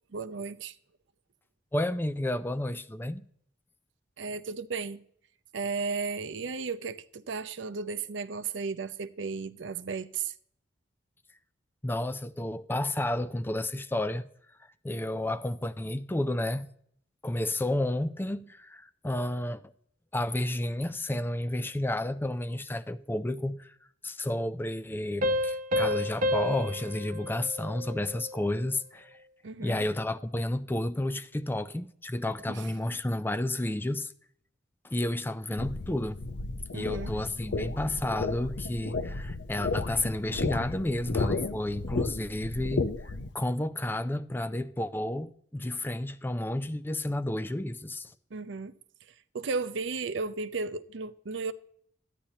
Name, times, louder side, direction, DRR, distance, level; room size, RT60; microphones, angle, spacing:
voice 1, 0.1-0.7 4.2-5.0 5.5-10.3 29.4-29.8 32.5-32.6 36.7-37.1 48.3-48.7 49.3-51.5, right 4 dB, 85° right, 0.6 m, -34 dB
voice 2, 1.7-3.2 11.8-14.3 14.8-16.7 17.2-19.6 20.1-23.7 24.0-29.2 29.6-34.1 34.8-36.2 36.7-48.1, left 1 dB, 10° left, 0.4 m, -31 dB
sound 1, 25.2-28.5, left 1 dB, 45° right, 0.8 m, -30 dB
sound 2, 35.6-43.3, left 3 dB, 65° left, 0.7 m, -33 dB
13.5 x 10.0 x 2.8 m
head